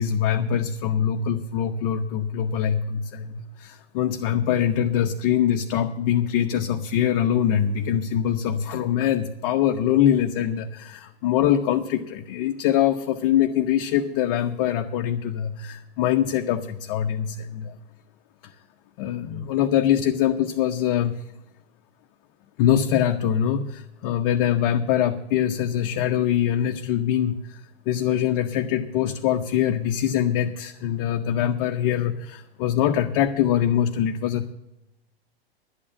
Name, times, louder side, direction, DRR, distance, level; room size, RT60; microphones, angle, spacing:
voice 1, 0.0-17.8 18.4-18.5 19.0-21.2 22.6-34.5, left 10 dB, 40° left, 4 dB, 0.7 m, -23 dB
11.5 x 8.6 x 8.6 m, 0.92 s
figure-of-eight pair, 100°, 30 cm